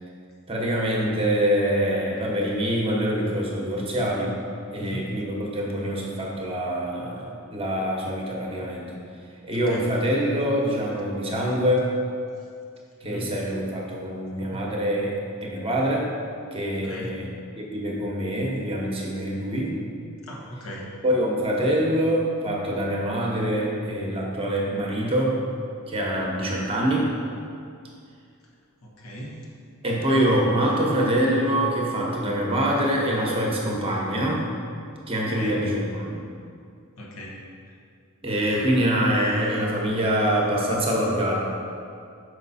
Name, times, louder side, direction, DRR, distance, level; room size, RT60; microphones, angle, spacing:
voice 1, 0.5-4.3 4.7-9.0 9.4-11.9 13.0-16.1 16.5-17.3 17.6-19.8 21.0-25.4 25.9-27.1 29.8-34.4 35.1-36.2 38.2-41.4, equal, 25° right, -2 dB, 0.9 m, -25 dB
voice 2, 4.8-5.1 9.7-9.8 13.0-13.3 14.4-14.6 16.7-17.1 20.3-20.9 28.8-29.4 35.4-35.6 37.0-37.4, equal, 80° left, -3 dB, 1.1 m, -37 dB
5.8 x 5.0 x 4.1 m, 2.4 s
head